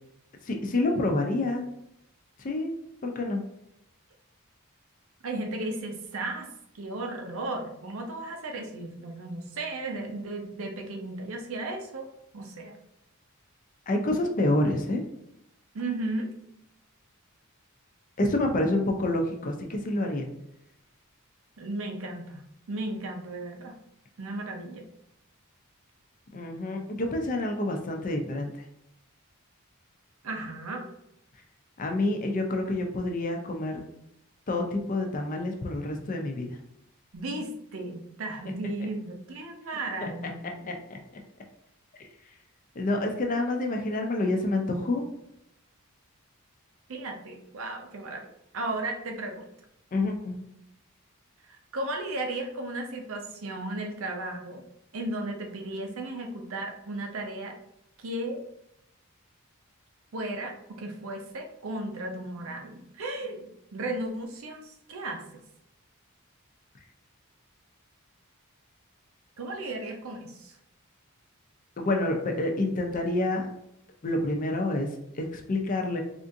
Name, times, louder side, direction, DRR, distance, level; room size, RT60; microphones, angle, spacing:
voice 1, 0.4-1.7 2.4-2.7 3.0-3.4 13.9-15.0 18.2-20.3 26.3-28.5 31.8-33.8 34.5-36.5 40.0-40.1 40.7-41.0 42.8-45.0 49.9-50.4 71.8-73.5 74.0-74.9 75.1-76.0, left 2 dB, 35° left, 2 dB, 0.5 m, -28 dB
voice 2, 5.2-6.5 6.7-12.1 12.3-12.8 15.7-16.3 21.6-23.7 24.2-24.8 30.2-30.9 37.1-40.7 46.9-48.3 48.5-49.5 51.5-54.6 54.9-57.5 58.0-58.4 60.1-65.2 69.4-70.6, right 2 dB, 65° right, 3 dB, 0.6 m, -35 dB
3.5 x 2.5 x 2.6 m, 0.80 s
head